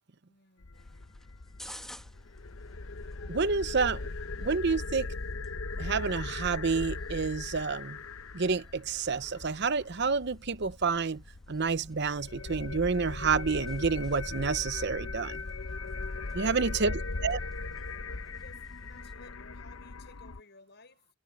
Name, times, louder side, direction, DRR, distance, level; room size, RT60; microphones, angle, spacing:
voice 1, 0.3-0.7 18.2-21.2, left 3 dB, 55° left, 6.6 m, -57 dB
sound 1, 0.6-20.4, left 3 dB, 85° left, 0.9 m, -39 dB
sound 2, 0.7-19.1, equal, ahead, 1.9 m, -56 dB
voice 2, 3.3-4.1 4.4-5.1 5.8-8.0 8.3-11.2 11.5-15.4 16.3-17.4, right 4 dB, 55° right, 0.8 m, -29 dB
head